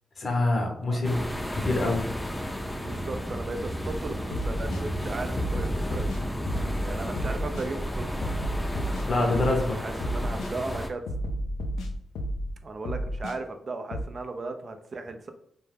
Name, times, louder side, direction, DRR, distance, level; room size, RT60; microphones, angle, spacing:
voice 1, 0.2-1.2 1.5-2.1 9.1-9.8, left 2 dB, 55° left, 2 dB, 0.7 m, -25 dB
sound 1, 1.0-10.9, equal, 10° left, 0.5 m, -32 dB
voice 2, 2.7-6.5 6.8-8.2 9.3-11.0 12.6-15.3, right 3 dB, 50° right, 6 dB, 0.3 m, -36 dB
sound 2, 4.3-4.8 5.4-6.8 7.2-7.7 8.2-9.7 10.0-10.5 11.1-12.5 12.8-13.4 13.9-14.0, equal, 85° left, 0.3 m, -32 dB
2.3 x 2.1 x 3.2 m, 0.69 s
supercardioid pair, 50°, 0 cm